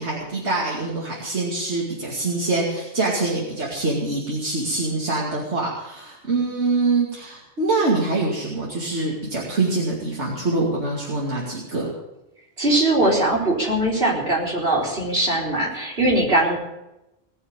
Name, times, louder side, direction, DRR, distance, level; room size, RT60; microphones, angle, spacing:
voice 1, 0.0-11.9, right 3 dB, 80° right, -4 dB, 2.8 m, -24 dB
voice 2, 12.6-16.6, right 1 dB, 60° right, -3 dB, 4.7 m, -21 dB
19.0 x 6.5 x 8.9 m, 0.92 s
omnidirectional pair, 1.1 m